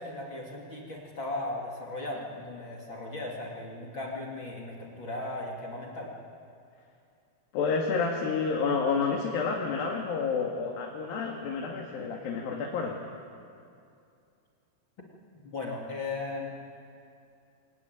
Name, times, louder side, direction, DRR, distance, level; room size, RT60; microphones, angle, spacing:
voice 1, 0.0-6.1 15.5-16.6, left 2 dB, 35° left, -2 dB, 2.9 m, -37 dB
voice 2, 7.5-13.0, left 5 dB, 70° left, -1 dB, 3.6 m, -29 dB
24.0 x 20.5 x 9.6 m, 2.5 s
omnidirectional pair, 4.5 m